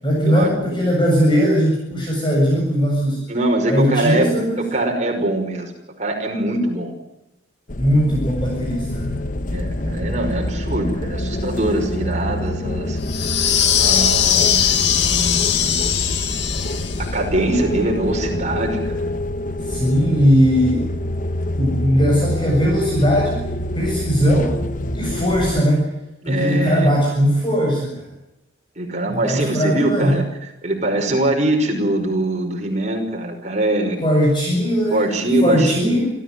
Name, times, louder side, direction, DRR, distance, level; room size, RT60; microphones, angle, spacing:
voice 1, 0.0-3.2 3.7-4.7 7.8-9.1 19.6-20.9 21.6-23.5 23.7-24.5 24.9-25.9 26.2-28.0 29.1-30.2 34.0-36.1, equal, 25° left, -2 dB, 7.3 m, -19 dB
voice 2, 3.3-5.7 6.0-6.9 9.5-13.0 13.3-15.8 17.0-19.1 26.2-26.9 28.8-30.2 30.6-34.0 34.9-36.0, right 1 dB, 40° right, 3 dB, 5.6 m, -22 dB
sound 1, 7.7-25.6, left 1 dB, 45° left, 1.1 m, -26 dB
sound 2, 13.1-17.1, left 9 dB, 65° left, 2.0 m, -19 dB
27.5 x 15.0 x 9.6 m, 0.91 s
head